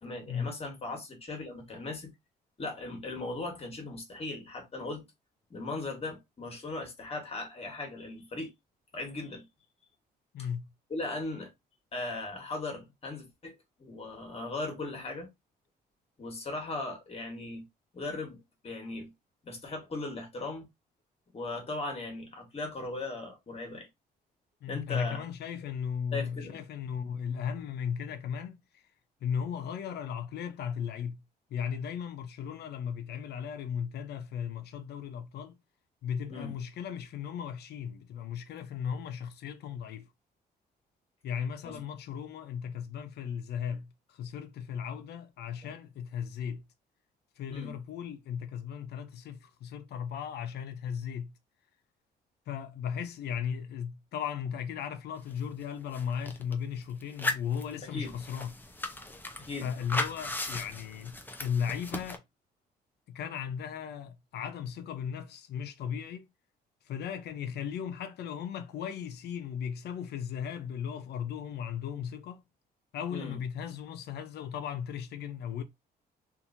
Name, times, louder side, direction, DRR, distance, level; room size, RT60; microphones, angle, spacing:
voice 1, 0.0-2.1 2.6-5.0 5.5-8.5 8.9-9.4 10.9-11.5 11.9-15.3 16.2-17.6 17.9-18.4 18.6-19.1 19.4-20.7 21.3-23.9 24.7-25.2 26.1-26.6 36.3-36.5 41.6-41.9 47.5-47.7 57.8-58.1 59.4-59.7 73.1-73.4, left 2 dB, 35° left, 1.3 m, -38 dB
voice 2, 10.3-10.7 24.6-28.8 29.2-31.2 31.5-35.6 36.0-40.0 41.2-46.6 47.4-51.3 52.5-58.6 59.6-62.2 63.1-66.3 66.9-72.4 72.9-75.6, left 7 dB, 70° left, 0.6 m, -36 dB
sound 1, 55.3-55.4 55.6-56.5 57.0-62.2, left 2 dB, 10° left, 0.5 m, -37 dB
2.8 x 2.5 x 2.6 m
cardioid pair, 95°, 17 cm